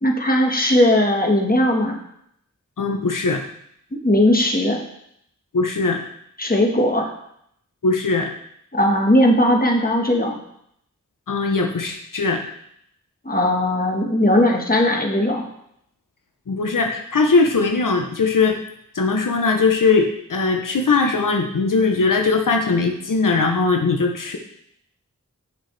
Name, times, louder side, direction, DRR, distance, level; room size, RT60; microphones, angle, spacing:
voice 1, 0.0-2.0 4.0-4.8 6.4-7.1 8.7-10.4 13.2-15.5, left 1 dB, 30° left, 1 dB, 1.3 m, -18 dB
voice 2, 2.8-3.4 5.5-6.0 7.8-8.3 11.3-12.4 16.5-18.6 18.9-24.4, left 4 dB, 90° left, 3 dB, 0.7 m, -20 dB
7.7 x 6.5 x 3.3 m, 0.73 s
wide cardioid pair, 40°, 31 cm